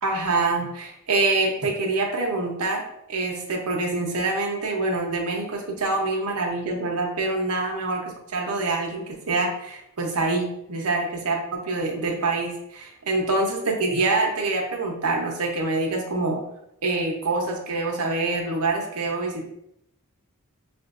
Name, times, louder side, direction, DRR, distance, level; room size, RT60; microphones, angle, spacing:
voice 1, 0.0-2.8 3.1-16.4 16.8-19.5, right 3 dB, 85° right, 0 dB, 0.9 m, -25 dB
6.0 x 2.5 x 2.5 m, 0.78 s
head